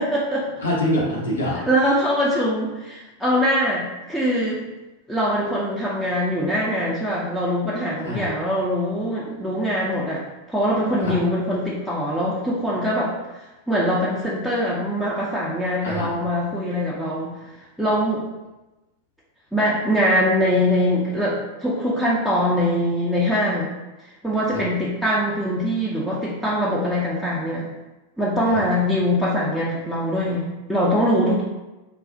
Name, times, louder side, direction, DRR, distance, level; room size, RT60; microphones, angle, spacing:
voice 1, 0.0-0.5 1.7-4.6 5.1-10.2 10.5-13.1 13.7-17.3 17.8-18.2 19.5-23.7 24.2-27.7 28.2-31.4, equal, ahead, -7 dB, 0.5 m, -22 dB
voice 2, 0.6-1.6 8.0-8.3 11.0-11.1 15.8-16.2 24.5-24.6 28.5-28.6, left 1 dB, 70° left, -4 dB, 1.0 m, -25 dB
2.4 x 2.3 x 3.7 m, 1.1 s
figure-of-eight pair, 90°, 0 cm